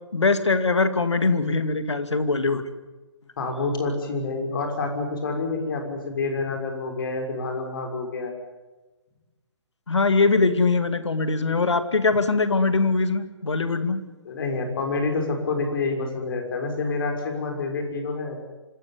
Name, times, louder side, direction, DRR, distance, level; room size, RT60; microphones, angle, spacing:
voice 1, 0.1-2.6 9.9-14.0, left 3 dB, 70° left, 10 dB, 2.2 m, -22 dB
voice 2, 3.4-8.3 14.2-18.4, left 3 dB, 50° left, 3 dB, 6.1 m, -28 dB
26.0 x 15.0 x 9.9 m, 1.2 s
figure-of-eight pair, 130°, 15 cm